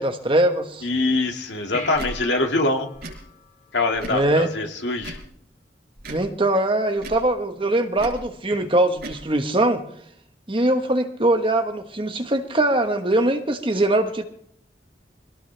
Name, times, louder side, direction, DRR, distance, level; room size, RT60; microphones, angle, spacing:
voice 1, 0.0-0.9 4.1-4.5 6.1-9.8 10.5-14.2, right 1 dB, 30° right, 6 dB, 1.3 m, -21 dB
voice 2, 0.8-2.9 3.7-5.2, left 2 dB, 85° left, 3 dB, 2.1 m, -23 dB
sound 1, 1.7-4.4 8.5-8.6, left 3 dB, 45° left, 7.5 m, -40 dB
Tick / Tick-tock, 1.9-2.1 2.9-3.2 3.9-4.3 5.0-5.3 6.0-6.3 7.0-7.3 8.0-8.2 8.9-9.2, right 1 dB, 60° right, 4.9 m, -36 dB
23.5 x 17.5 x 3.4 m, 0.69 s
head